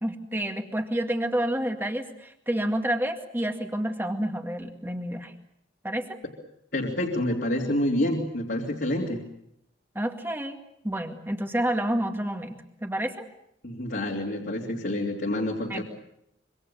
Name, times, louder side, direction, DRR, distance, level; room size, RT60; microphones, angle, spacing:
voice 1, 0.0-5.3 5.8-6.2 10.0-10.6 10.8-13.3 15.7-15.8, right 1 dB, 10° right, 5 dB, 2.1 m, -29 dB
voice 2, 6.7-9.2 13.6-15.8, left 1 dB, 55° left, -2 dB, 3.2 m, -28 dB
26.0 x 24.5 x 7.0 m, 0.76 s
head